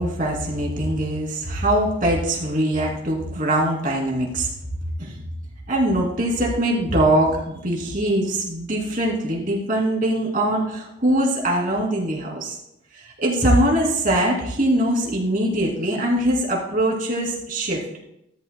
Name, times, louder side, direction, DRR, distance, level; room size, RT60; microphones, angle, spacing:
voice 1, 0.0-4.5 5.0-5.1 5.7-12.6 13.2-17.8, right 1 dB, 40° right, -2 dB, 2.8 m, -22 dB
14.5 x 13.0 x 2.2 m, 0.82 s
head